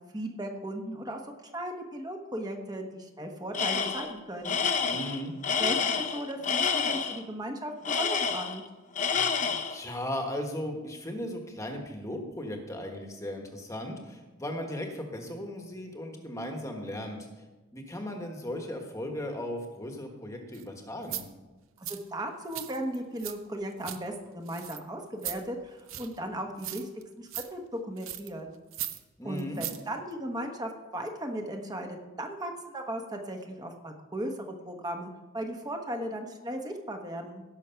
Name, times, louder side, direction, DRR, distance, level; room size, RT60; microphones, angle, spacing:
voice 1, 0.1-1.2 1.5-4.6 5.6-8.6 21.8-26.9 27.2-28.5 29.2-37.4, right 1 dB, 20° right, 3 dB, 1.1 m, -36 dB
Tools, 3.5-4.1 4.4-7.2 7.8-8.7 9.0-9.8, left 6 dB, 35° left, 0.8 m, -28 dB
voice 2, 4.8-5.4 9.7-17.4 17.7-21.3 29.2-29.6, left 1 dB, 15° left, 3 dB, 1.3 m, -37 dB
sound 1, 20.5-20.6 21.0-21.2 21.8-22.0 22.5-23.3 23.6-24.0 24.5-24.8 25.2-25.4 25.9-26.2 26.6-27.0 27.3-27.5 28.0-28.3 28.7-29.0 29.4-29.8 30.1-30.2, right 13 dB, 65° right, 0.7 m, -37 dB
16.5 x 6.4 x 5.7 m, 1.2 s
head